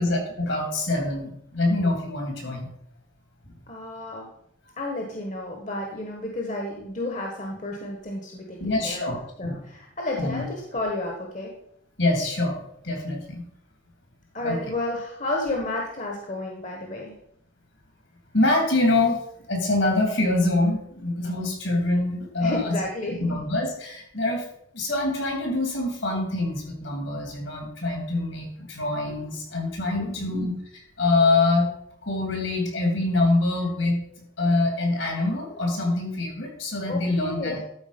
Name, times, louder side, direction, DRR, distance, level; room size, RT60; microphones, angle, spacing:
voice 1, 0.0-2.7 8.6-9.6 10.2-10.4 12.0-12.6 12.8-13.4 14.4-14.6 18.3-19.2 19.5-22.8 23.2-24.4 24.7-30.5 31.0-31.7 32.0-34.0 34.4-37.6, left 2 dB, 70° left, 1 dB, 3.2 m, -25 dB
voice 2, 3.7-4.3 4.8-11.5 14.3-17.1 22.4-23.4 30.0-30.5 36.9-37.6, left 2 dB, 40° left, 1 dB, 1.3 m, -32 dB
12.0 x 4.8 x 5.2 m, 0.72 s
head